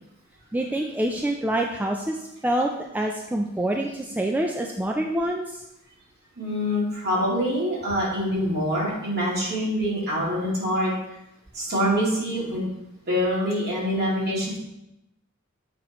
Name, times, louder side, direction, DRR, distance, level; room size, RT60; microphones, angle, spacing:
voice 1, 0.5-5.6, right 1 dB, 10° right, 1 dB, 0.3 m, -26 dB
voice 2, 6.4-10.9 11.5-12.7 13.1-14.6, equal, 50° right, -6 dB, 2.4 m, -25 dB
7.5 x 4.8 x 3.0 m, 0.88 s
head